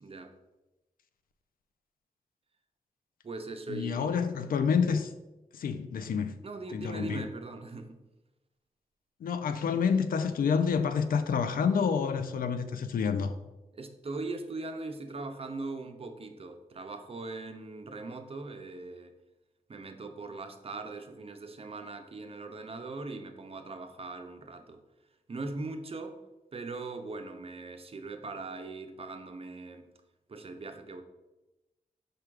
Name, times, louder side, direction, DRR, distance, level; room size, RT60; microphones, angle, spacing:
voice 1, 0.0-0.3 3.2-4.3 6.4-8.0 13.7-19.1 19.7-24.8 25.3-26.2 26.5-29.8 30.3-31.0, right 3 dB, 40° right, 6 dB, 0.5 m, -40 dB
voice 2, 3.7-5.1 5.5-6.3 6.7-7.2 9.2-13.3, left 6 dB, 80° left, 9 dB, 0.4 m, -28 dB
4.9 x 2.3 x 4.6 m, 1.0 s
cardioid pair, 60°, 15 cm